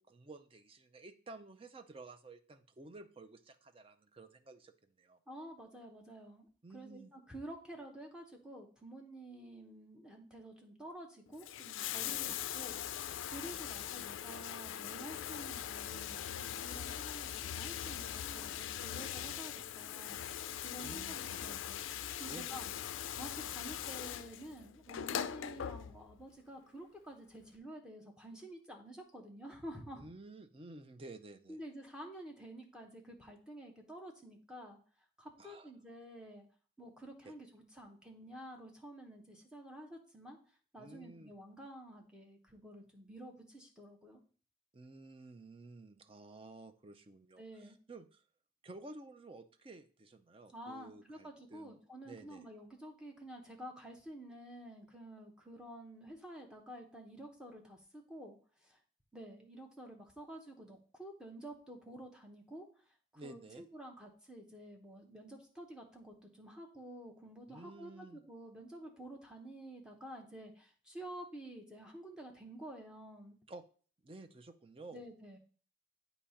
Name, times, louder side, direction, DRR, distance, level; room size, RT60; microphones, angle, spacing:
voice 1, 0.0-5.2 6.6-7.1 12.0-12.4 20.8-21.2 22.3-22.8 30.0-31.6 35.4-35.7 37.2-37.3 40.8-41.3 44.7-48.2 48.6-51.8 52.0-52.5 63.1-63.6 67.5-68.2 73.5-73.6 74.0-75.0, right 2 dB, 30° right, 9 dB, 0.5 m, -53 dB
voice 2, 5.3-6.5 6.7-21.8 22.2-22.7 23.1-30.0 31.5-34.8 35.2-36.4 36.8-40.4 40.7-44.2 47.4-47.8 50.5-58.4 58.6-58.8 59.1-62.7 63.1-73.4 74.9-75.4, right 1 dB, 5° right, -1 dB, 1.0 m, -50 dB
Bathtub (filling or washing), 11.3-26.2 27.4-27.5, left 10 dB, 75° left, 0.3 m, -41 dB
8.4 x 2.8 x 5.7 m, 0.41 s
head